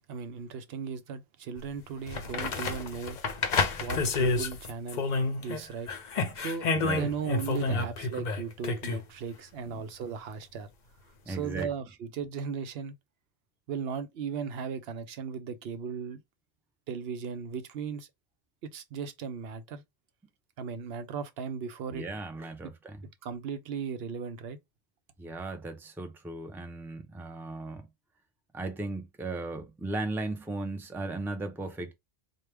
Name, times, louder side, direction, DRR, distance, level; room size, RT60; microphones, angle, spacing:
voice 1, 0.1-3.2 3.8-5.1 5.4-5.9 6.3-10.7 11.3-12.9 13.7-16.2 16.9-18.1 18.7-19.8 20.6-22.1 22.6-22.7 23.2-24.6, right 6 dB, 75° right, 0.8 m, -37 dB
sound 1, 1.6-1.7 2.1-5.6 5.9-9.0 11.6-11.7, left 3 dB, 50° left, 0.7 m, -30 dB
voice 2, 6.7-7.1 7.7-7.9 9.6-9.9 11.3-11.7 21.9-23.0 25.2-27.9 28.5-31.9, right 2 dB, 5° right, 0.5 m, -36 dB
4.5 x 2.2 x 3.3 m
omnidirectional pair, 1.0 m